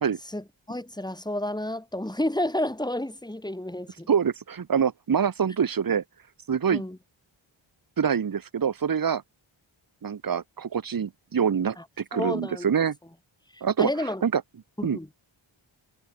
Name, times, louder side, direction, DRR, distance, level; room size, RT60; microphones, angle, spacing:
voice 1, 0.3-4.1 6.7-7.0 11.8-11.9 12.1-12.7 13.5-14.2 14.8-15.1, left 1 dB, 10° left, 2.5 m, -31 dB
voice 2, 4.1-6.0 6.5-6.8 8.0-9.2 10.0-11.8 12.1-13.0 13.6-13.9 14.2-14.4 14.8-15.0, right 7 dB, 45° right, 0.8 m, -25 dB
wide cardioid pair, 60°, 50 cm